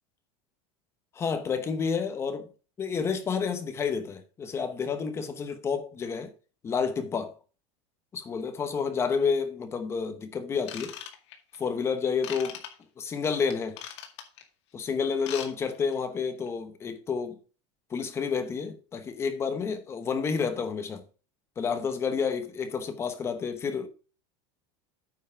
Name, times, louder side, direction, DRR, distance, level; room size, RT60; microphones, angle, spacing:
voice 1, 1.1-2.5 2.8-6.3 6.6-7.3 8.1-11.0 11.6-12.6 13.0-13.8 14.7-17.4 17.9-21.0 21.6-23.9, left 5 dB, 15° left, 0.9 m, -30 dB
Ratchet pawl / Tools, 10.6-11.6 12.2-12.7 13.5-14.4 15.1-15.5 15.7-15.9 16.5-16.6, left 10 dB, 65° left, 2.1 m, -39 dB
9.1 x 5.6 x 4.9 m
supercardioid pair, 175°, 16 cm